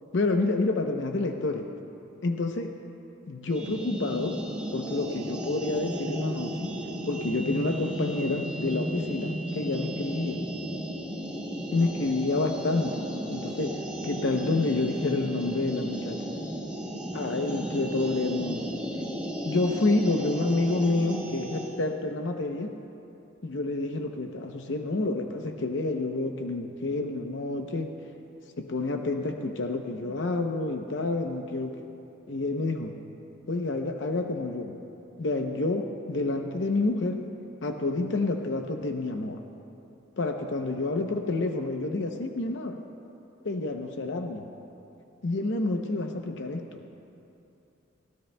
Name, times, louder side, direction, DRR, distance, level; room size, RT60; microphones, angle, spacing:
voice 1, 0.1-1.7 2.2-2.7 3.3-4.4 4.7-6.8 7.1-10.5 11.7-13.0 13.3-16.3 17.1-18.7 19.4-22.7 23.4-27.9 28.6-31.8 32.3-32.9 33.5-34.8 35.2-37.2 37.6-39.4 40.2-42.8 43.4-44.4 45.2-46.8, left 2 dB, 70° left, 4 dB, 0.7 m, -29 dB
sound 1, 3.5-21.8, equal, 5° right, 2.0 m, -34 dB
23.0 x 16.0 x 2.2 m, 2.8 s
head